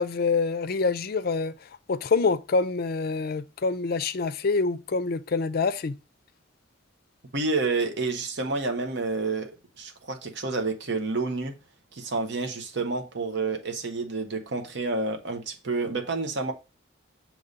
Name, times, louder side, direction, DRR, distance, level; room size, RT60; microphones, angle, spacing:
voice 1, 0.0-6.0, left 4 dB, 50° left, 0.4 m, -26 dB
voice 2, 7.3-11.5 11.9-16.5, right 3 dB, 65° right, 0.9 m, -29 dB
6.7 x 3.1 x 5.1 m
head